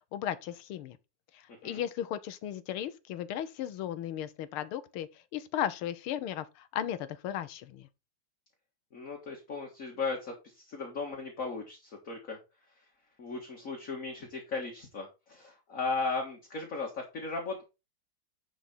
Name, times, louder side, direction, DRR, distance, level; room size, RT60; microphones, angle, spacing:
voice 1, 0.1-1.0 1.3-7.9, left 10 dB, 80° left, 1.7 m, -36 dB
voice 2, 8.9-12.4 13.2-17.6, left 4 dB, 40° left, 2.1 m, -36 dB
10.5 x 5.3 x 4.4 m
omnidirectional pair, 2.3 m